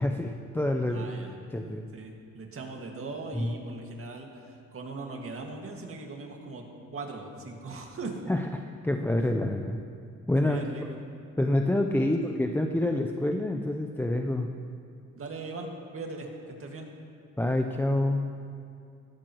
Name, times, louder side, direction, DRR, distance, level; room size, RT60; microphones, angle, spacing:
voice 1, 0.0-1.1 1.5-1.9 3.3-3.5 8.3-9.8 10.3-10.6 11.4-14.5 17.4-18.3, left 1 dB, 5° left, 3 dB, 0.6 m, -27 dB
voice 2, 0.9-1.3 1.9-6.7 6.9-8.2 10.4-11.0 15.2-16.3 16.6-16.9, right 3 dB, 45° right, 1 dB, 2.0 m, -39 dB
16.5 x 13.5 x 3.1 m, 2.4 s
cardioid pair, 90°, 30 cm